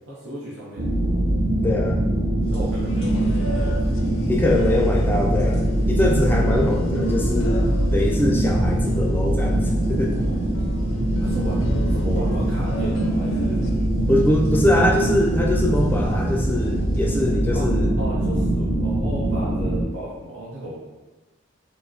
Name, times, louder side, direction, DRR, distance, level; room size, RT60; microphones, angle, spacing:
voice 1, 0.0-0.9 2.5-4.0 11.2-13.7 17.5-17.7 18.0-20.8, right 1 dB, 85° right, -6 dB, 0.7 m, -34 dB
sound 1, 0.8-19.8, right 1 dB, 50° right, 0.6 m, -22 dB
voice 2, 1.6-2.0 4.3-10.2 14.1-17.9, left 1 dB, 10° left, -1 dB, 0.4 m, -23 dB
sound 2, 2.4-17.3, equal, 30° right, 1.4 m, -37 dB
sound 3, 2.7-13.9, left 1 dB, 85° left, 0.4 m, -37 dB
4.5 x 2.1 x 2.7 m, 1.2 s
head